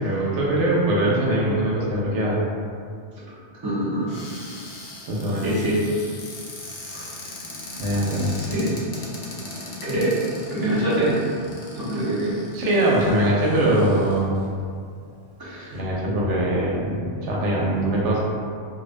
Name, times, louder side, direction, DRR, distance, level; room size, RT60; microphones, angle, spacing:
voice 1, 0.0-2.4 5.1-5.5 7.8-8.3 12.5-14.3 15.7-18.2, right 1 dB, 80° right, -4 dB, 0.9 m, -22 dB
voice 2, 3.6-4.1 5.4-5.8 6.9-7.0 8.4-8.7 9.8-10.2 10.5-11.2 11.8-12.3 15.4-15.7, right 1 dB, 30° right, -9 dB, 0.4 m, -24 dB
Cupboard open or close, 4.1-14.4 15.1-15.2 15.5-15.8, left 2 dB, 60° left, 0.7 m, -39 dB
2.3 x 2.1 x 2.5 m, 2.2 s
omnidirectional pair, 1.2 m